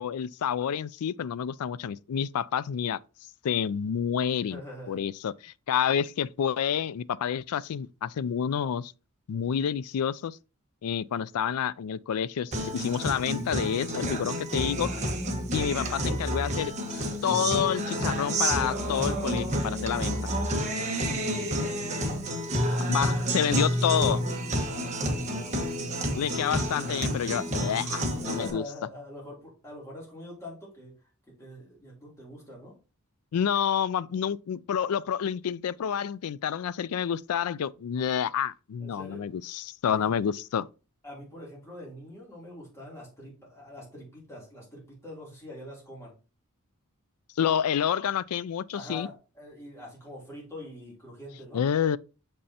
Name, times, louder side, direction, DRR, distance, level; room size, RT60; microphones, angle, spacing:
voice 1, 0.0-3.0 3.4-4.6 4.9-8.9 9.3-10.4 10.8-14.9 15.5-20.2 22.9-24.2 26.1-28.6 33.3-40.7 47.4-49.1 51.5-52.0, left 8 dB, 80° left, 0.4 m, -29 dB
voice 2, 4.5-5.0 14.0-14.1 14.5-14.9 19.7-20.2 21.0-22.2 24.6-26.0 28.2-31.0 31.4-32.7 38.8-39.2 39.9-40.3 41.0-46.1 48.7-51.6, equal, 15° left, 3.0 m, -44 dB
Guitar, 12.5-28.5, equal, 30° right, 1.3 m, -29 dB
6.9 x 5.3 x 2.8 m
head